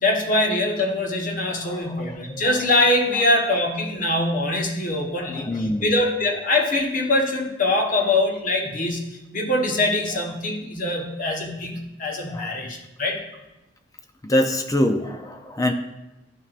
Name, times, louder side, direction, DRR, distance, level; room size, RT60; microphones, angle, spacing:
voice 1, 0.0-9.1 9.3-13.2, left 2 dB, 45° left, 2 dB, 1.2 m, -23 dB
voice 2, 1.6-2.4 3.1-3.2 5.1-5.9 12.3-12.5 14.2-15.7, left 1 dB, 20° left, 6 dB, 0.5 m, -25 dB
12.5 x 5.6 x 2.5 m, 0.97 s
head